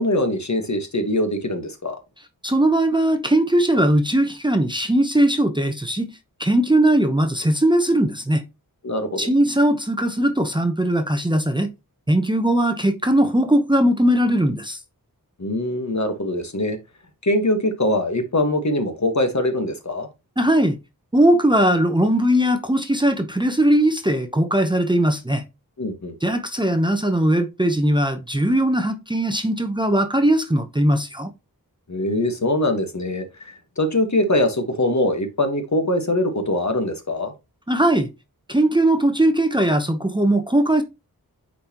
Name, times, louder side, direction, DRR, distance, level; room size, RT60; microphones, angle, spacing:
voice 1, 0.0-2.0 8.8-9.2 15.4-16.8 17.2-20.1 25.8-26.1 31.9-37.3, left 1 dB, 50° left, 1.4 m, -22 dB
voice 2, 2.4-6.1 6.4-8.4 9.2-11.7 12.1-14.8 20.4-20.8 21.1-25.4 26.2-31.3 37.7-38.1 38.5-40.8, right 1 dB, 15° right, 0.8 m, -19 dB
9.0 x 4.2 x 2.9 m
wide cardioid pair, 70°, 37 cm